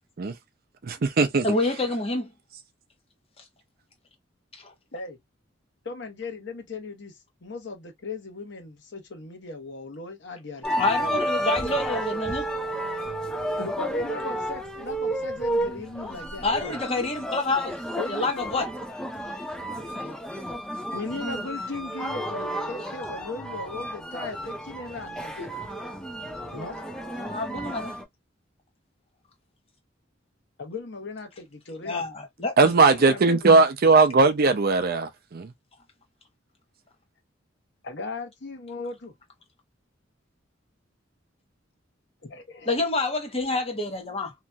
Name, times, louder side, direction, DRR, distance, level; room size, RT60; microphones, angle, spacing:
voice 1, 0.8-1.5 32.6-35.5, right 3 dB, 50° right, 0.5 m, -19 dB
voice 2, 1.4-2.3 4.6-4.7 10.8-12.5 16.4-17.8 18.1-18.7 27.2-27.9 31.8-32.7 42.7-44.3, left 2 dB, 30° left, 1.1 m, -27 dB
voice 3, 5.8-11.2 13.6-16.5 18.0-18.6 20.9-25.5 26.5-26.8 30.6-32.0 33.0-33.5 37.8-39.1 42.2-42.8, left 3 dB, 65° left, 1.0 m, -37 dB
sound 1, 10.6-28.0, right 1 dB, 5° left, 0.6 m, -32 dB
2.9 x 2.6 x 2.2 m
head